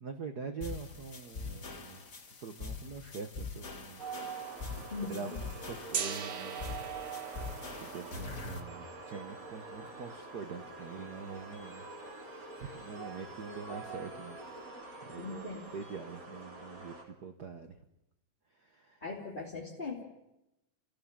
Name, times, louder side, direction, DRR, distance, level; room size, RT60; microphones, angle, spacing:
voice 1, 0.0-2.0 2.4-4.0 4.8-5.3 5.7-6.7 7.8-11.8 12.3-14.4 15.1-17.7 18.6-19.0, right 5 dB, 75° right, 7 dB, 0.9 m, -44 dB
sound 1, 0.6-8.6, left 4 dB, 35° left, 1.7 m, -43 dB
sound 2, 4.0-17.0, right 3 dB, 30° right, 3.0 m, -46 dB
voice 2, 4.9-5.3 15.2-15.7 19.0-20.0, left 3 dB, 15° left, -4 dB, 2.6 m, -40 dB
Gong, 5.9-11.8, right 7 dB, 50° right, 2.1 m, -43 dB
29.0 x 16.0 x 7.5 m, 0.92 s
omnidirectional pair, 3.6 m